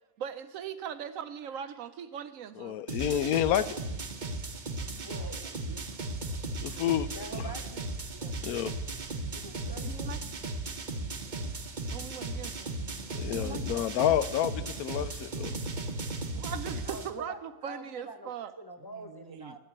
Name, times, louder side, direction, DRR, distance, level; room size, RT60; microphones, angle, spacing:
voice 1, 0.2-2.8 4.5-6.0 6.3-6.4 6.7-6.8 7.1-7.6 8.1-8.7 9.8-10.2 11.3-11.5 11.9-12.7 13.3-13.8 16.3-18.5 18.8-19.6, right 8 dB, 70° right, 13 dB, 1.0 m, -42 dB
voice 2, 2.6-3.6 6.6-7.1 8.4-8.7 13.1-15.6, left 11 dB, 75° left, 15 dB, 1.0 m, -29 dB
sound 1, 2.9-17.1, right 2 dB, 40° right, 0.8 m, -36 dB
voice 3, 5.0-5.4 7.1-7.9 9.3-9.9 16.3-16.4 16.8-19.6, right 1 dB, 25° left, 4 dB, 0.5 m, -45 dB
sound 2, 5.9-13.2, right 3 dB, 45° left, 2.5 m, -52 dB
10.0 x 7.4 x 8.5 m, 1.1 s
omnidirectional pair, 1.6 m